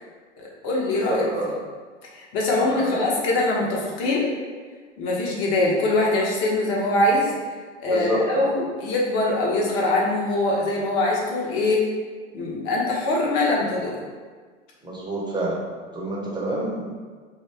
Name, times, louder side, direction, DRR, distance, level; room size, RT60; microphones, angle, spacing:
voice 1, 0.4-1.3 2.1-4.3 5.0-7.3 7.8-11.9 12.3-14.0, left 2 dB, 40° left, -3 dB, 1.0 m, -23 dB
voice 2, 0.9-1.5 2.5-3.1 7.9-8.5 14.8-15.6 15.9-16.9, right 1 dB, 10° right, -4 dB, 0.8 m, -27 dB
3.2 x 2.6 x 3.3 m, 1.5 s
hypercardioid pair, 100°, 37 cm